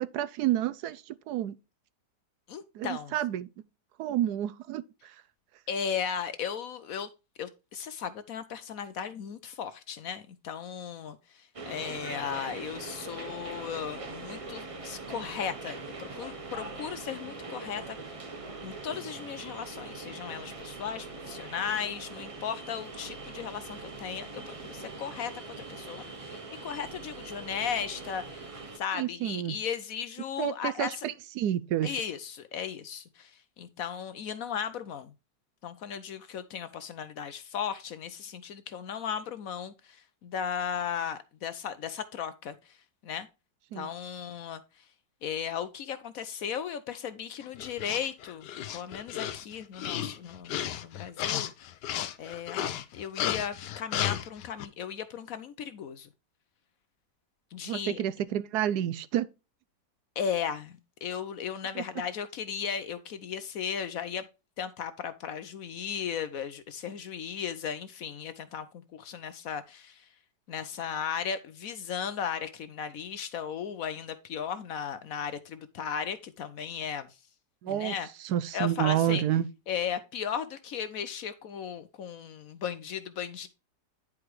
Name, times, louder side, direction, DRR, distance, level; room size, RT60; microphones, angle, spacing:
voice 1, 0.0-1.6 2.7-3.5 4.0-5.2 28.9-29.6 30.4-32.0 43.7-43.9 57.6-59.3 61.7-61.8 77.6-79.5, right 11 dB, 75° right, 1.0 m, -30 dB
voice 2, 2.5-3.1 5.7-7.1 7.4-18.2 18.6-25.3 25.6-28.5 28.7-31.1 31.8-35.1 35.6-42.8 43.0-43.3 43.7-44.8 45.2-48.5 48.7-51.5 52.2-56.1 57.5-58.0 60.2-64.3 64.6-70.1 70.5-77.2 77.7-78.1 78.5-79.2 79.7-83.5, left 7 dB, 65° left, 1.0 m, -36 dB
sound 1, 11.5-28.8, right 3 dB, 35° right, 0.5 m, -42 dB
sound 2, 47.4-54.7, left 11 dB, 80° left, 1.3 m, -34 dB
10.0 x 4.8 x 3.1 m
omnidirectional pair, 1.9 m